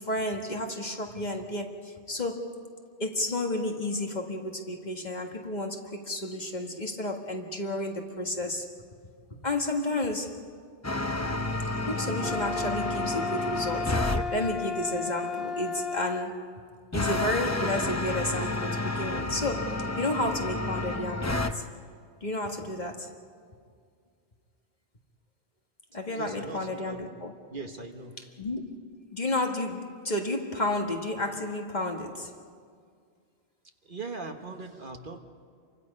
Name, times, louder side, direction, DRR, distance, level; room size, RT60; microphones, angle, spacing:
voice 1, 0.0-2.7 3.0-8.7 9.4-10.5 11.9-16.5 16.9-21.6 22.2-23.1 25.9-27.3 28.4-28.7 29.1-32.4, left 1 dB, 40° left, 2 dB, 1.8 m, -32 dB
sound 1, 10.8-14.2 16.9-21.5, left 2 dB, 15° left, 0.7 m, -30 dB
sound 2, 12.2-16.3, left 4 dB, 65° left, 1.1 m, -33 dB
voice 2, 26.1-27.1 27.5-28.3 33.8-35.2, right 3 dB, 50° right, 4 dB, 1.5 m, -40 dB
29.0 x 24.5 x 5.4 m, 2.1 s
omnidirectional pair, 1.1 m